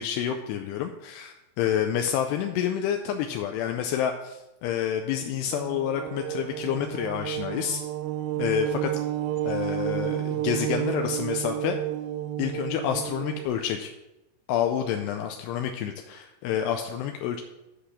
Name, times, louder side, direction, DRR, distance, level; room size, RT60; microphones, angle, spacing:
voice 1, 0.0-7.9 8.4-8.9 9.4-11.8 12.4-13.9 14.5-17.4, left 9 dB, 85° left, 5 dB, 2.4 m, -28 dB
sound 1, 5.5-13.5, right 13 dB, 85° right, 2.6 m, -31 dB
8.1 x 5.0 x 7.1 m, 0.96 s
omnidirectional pair, 5.3 m